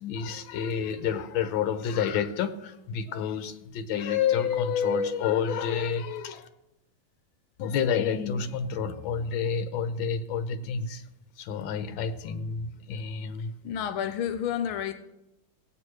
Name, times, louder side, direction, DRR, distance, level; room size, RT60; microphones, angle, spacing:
voice 1, 0.0-6.5 7.6-11.0 11.4-13.5, left 7 dB, 75° left, 1.5 m, -29 dB
voice 2, 13.4-14.9, left 9 dB, 90° left, 1.5 m, -31 dB
17.0 x 7.7 x 3.2 m
omnidirectional pair, 2.2 m